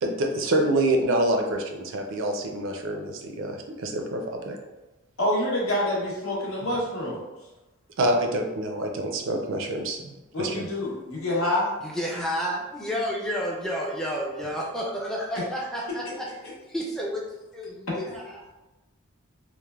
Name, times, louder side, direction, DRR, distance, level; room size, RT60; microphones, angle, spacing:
voice 1, 0.0-3.5 3.8-4.6 8.0-10.1 10.4-10.7, right 1 dB, 60° right, 3 dB, 0.4 m, -26 dB
voice 2, 5.2-7.2 10.3-11.7, left 1 dB, 75° left, -4 dB, 0.8 m, -26 dB
voice 3, 11.8-17.3 17.5-18.5, equal, ahead, -3 dB, 0.4 m, -31 dB
3.1 x 2.1 x 2.3 m, 1.1 s
head